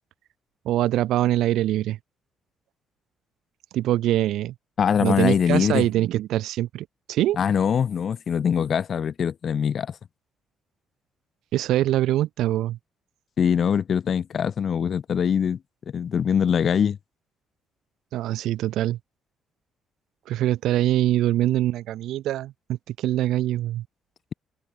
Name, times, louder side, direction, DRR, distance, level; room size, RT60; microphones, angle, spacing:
voice 1, 0.6-2.0 3.7-4.5 5.0-7.4 11.5-12.8 18.1-19.0 20.3-23.8, right 14 dB, 85° right, 1.4 m, -23 dB
voice 2, 4.8-5.9 7.4-9.9 13.4-15.6 15.9-17.0, left 7 dB, 55° left, 1.1 m, -23 dB
open air
cardioid pair, 90°, 0 cm